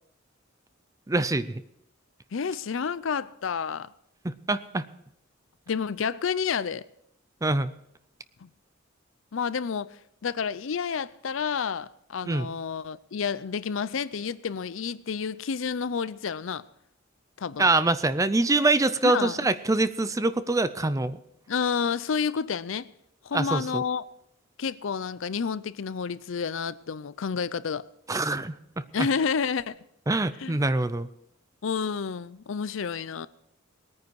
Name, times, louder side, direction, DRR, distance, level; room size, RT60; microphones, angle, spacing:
voice 1, 1.1-1.6 4.2-4.8 7.4-7.7 12.2-12.5 17.6-21.2 23.3-23.8 28.1-28.6 29.0-29.1 30.1-31.1, right 2 dB, 15° right, 0.5 m, -24 dB
voice 2, 2.3-3.9 5.7-6.8 8.4-8.5 9.3-10.0 10.2-16.6 17.4-17.7 19.0-19.4 21.5-22.9 23.2-24.0 24.6-27.8 28.9-29.8 30.4-30.6 31.6-33.3, left 6 dB, 70° left, 0.5 m, -30 dB
20.0 x 9.5 x 4.7 m
head